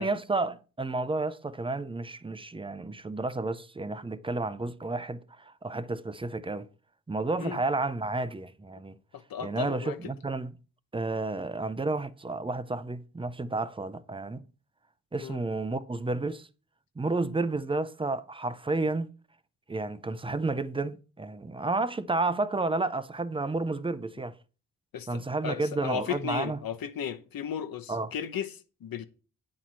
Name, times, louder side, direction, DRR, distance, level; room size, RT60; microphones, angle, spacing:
voice 1, 0.0-6.7 7.1-9.0 9.4-10.5 10.9-14.4 15.1-16.5 17.0-19.1 19.7-24.3 25.1-26.6 27.9-28.1, right 3 dB, 15° right, 0.5 m, -31 dB
voice 2, 9.1-10.0 15.2-15.4 24.9-29.1, left 8 dB, 85° left, 1.0 m, -35 dB
9.5 x 4.3 x 7.4 m
wide cardioid pair, 150°, 34 cm